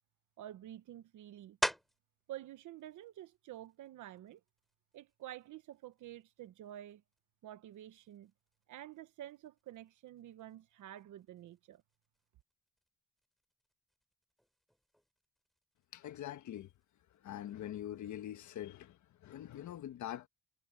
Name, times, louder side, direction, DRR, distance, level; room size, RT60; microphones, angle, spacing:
voice 1, 0.4-1.6 2.3-4.4 4.9-7.0 7.4-8.3 8.7-11.8, right 12 dB, 75° right, 1.2 m, -49 dB
sound 1, 1.6-2.2 2.8-7.2 7.7-12.9 13.2-18.8, equal, ahead, 3.5 m, -46 dB
voice 2, 15.9-16.7 17.2-20.3, left 11 dB, 70° left, 1.5 m, -44 dB
cardioid pair, 90°, 30 cm